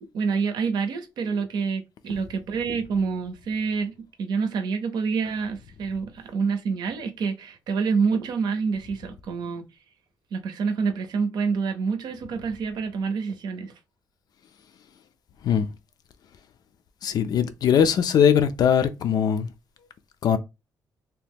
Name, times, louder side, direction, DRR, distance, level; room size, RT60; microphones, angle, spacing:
voice 1, 0.1-3.9 4.2-9.6 10.3-13.7, right 5 dB, 80° right, 0.6 m, -27 dB
voice 2, 17.0-19.5 20.2-20.4, left 8 dB, 65° left, 0.4 m, -20 dB
2.9 x 2.2 x 3.4 m
cardioid pair, 105°, 7 cm